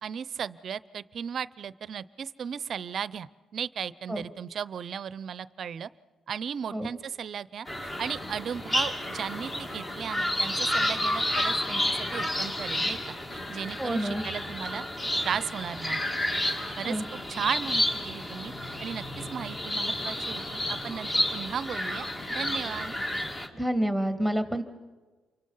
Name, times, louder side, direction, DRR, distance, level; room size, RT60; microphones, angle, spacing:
voice 1, 0.0-5.9 6.3-13.0 13.3-14.8 15.2-16.0 16.8-18.5 18.8-22.9, right 7 dB, 55° right, 18 dB, 0.6 m, -35 dB
sound 1, 7.7-23.5, left 1 dB, 25° left, 2.6 m, -31 dB
voice 2, 13.8-14.2 16.8-17.1 23.5-24.6, equal, ahead, 8 dB, 2.0 m, -28 dB
28.5 x 24.5 x 5.6 m, 1.3 s
cardioid pair, 90°, 0 cm